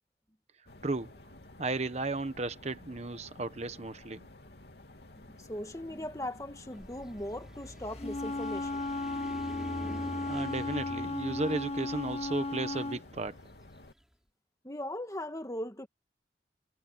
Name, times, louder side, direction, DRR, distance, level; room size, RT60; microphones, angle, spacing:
sound 1, 0.6-13.9, left 1 dB, 65° left, 3.1 m, -53 dB
voice 1, 0.8-1.1 1.6-4.3 10.3-13.4, right 2 dB, 40° right, 1.0 m, -34 dB
voice 2, 5.3-8.8 14.6-15.9, left 1 dB, 20° left, 1.8 m, -39 dB
sound 2, 6.7-13.8, equal, 5° right, 5.2 m, -46 dB
Wind instrument woodwind instrument, 7.9-13.0, left 2 dB, 35° left, 1.8 m, -35 dB
head